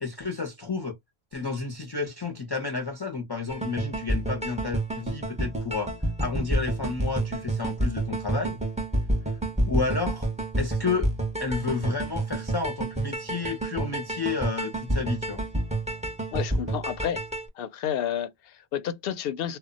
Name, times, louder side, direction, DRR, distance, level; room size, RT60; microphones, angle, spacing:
voice 1, 0.0-1.0 1.3-5.9 6.2-8.6 9.7-10.3 10.6-11.1 11.4-15.4, left 4 dB, 30° left, 0.5 m, -31 dB
sound 1, 3.5-17.5, right 1 dB, 10° right, 0.7 m, -29 dB
voice 2, 16.3-17.2 17.5-19.6, left 9 dB, 70° left, 0.7 m, -30 dB
2.1 x 2.1 x 3.7 m
omnidirectional pair, 1.0 m